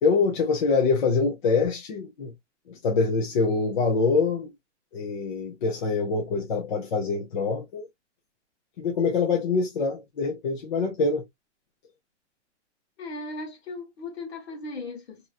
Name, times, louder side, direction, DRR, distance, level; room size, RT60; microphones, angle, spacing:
voice 1, 0.0-2.3 2.7-4.5 4.9-7.9 8.8-11.3, left 4 dB, 40° left, 0.7 m, -25 dB
voice 2, 13.0-15.3, left 2 dB, 60° left, 1.3 m, -37 dB
3.0 x 2.8 x 2.4 m
hypercardioid pair, 170°, 36 cm